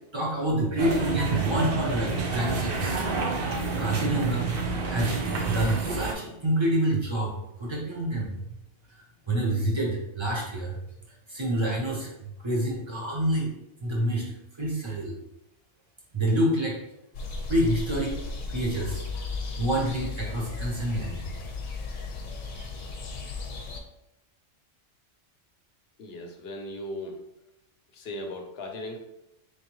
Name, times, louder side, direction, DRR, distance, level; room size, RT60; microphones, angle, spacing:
voice 1, 0.1-3.0 3.8-5.2 5.4-7.3 7.6-8.4 9.3-10.8 11.3-13.5 13.8-14.2 14.6-15.1 16.1-16.8 17.5-18.1 18.5-19.0 19.5-21.2, right 1 dB, 25° right, -3 dB, 0.9 m, -27 dB
sound 1, 0.8-6.1, right 4 dB, 55° right, 0.8 m, -29 dB
sound 2, 17.1-23.8, left 3 dB, 90° left, 1.1 m, -35 dB
voice 2, 26.0-27.2 27.9-29.0, left 1 dB, 60° left, 3 dB, 0.9 m, -37 dB
4.0 x 3.2 x 3.0 m, 0.86 s
omnidirectional pair, 1.3 m